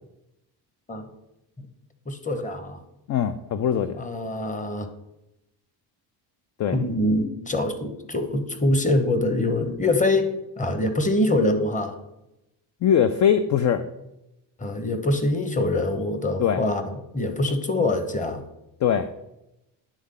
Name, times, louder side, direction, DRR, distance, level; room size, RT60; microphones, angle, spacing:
voice 1, 2.1-2.8 4.0-4.9 6.7-12.0 14.6-16.8 17.1-18.4, left 1 dB, 15° left, 8 dB, 0.9 m, -24 dB
voice 2, 3.1-4.0 6.6-6.8 12.8-13.8 16.4-16.6 18.8-19.1, left 8 dB, 40° left, 9 dB, 0.4 m, -21 dB
10.0 x 3.6 x 3.7 m, 0.90 s
supercardioid pair, 80°, 47 cm